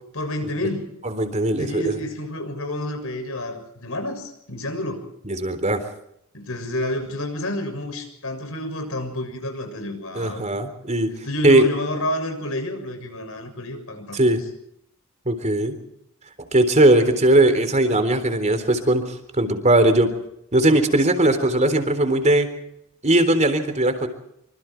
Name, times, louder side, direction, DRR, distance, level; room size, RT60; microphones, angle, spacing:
voice 1, 0.1-1.0 1.6-5.0 6.3-10.5 11.2-14.3, left 1 dB, 70° left, 6 dB, 6.9 m, -29 dB
voice 2, 1.0-1.8 5.3-5.8 10.2-11.1 11.4-11.7 14.1-14.4 15.3-15.8 16.5-20.1 20.5-22.5 23.0-24.1, right 1 dB, 35° right, 9 dB, 3.7 m, -19 dB
26.5 x 26.0 x 4.7 m, 0.78 s
head